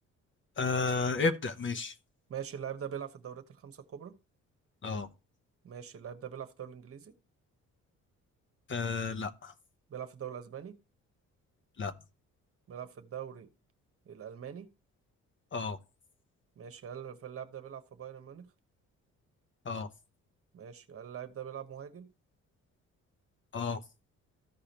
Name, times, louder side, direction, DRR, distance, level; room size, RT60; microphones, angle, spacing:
voice 1, 0.6-1.9 4.8-5.1 8.7-9.5 11.8-11.9 15.5-15.8 19.7-19.9 23.5-23.8, left 4 dB, 40° left, 0.9 m, -32 dB
voice 2, 2.3-4.2 5.6-7.1 9.9-10.8 12.7-13.5 14.0-14.7 16.6-18.5 20.5-22.1, right 8 dB, 50° right, 1.1 m, -43 dB
14.5 x 4.9 x 2.9 m
cardioid pair, 90°, 30 cm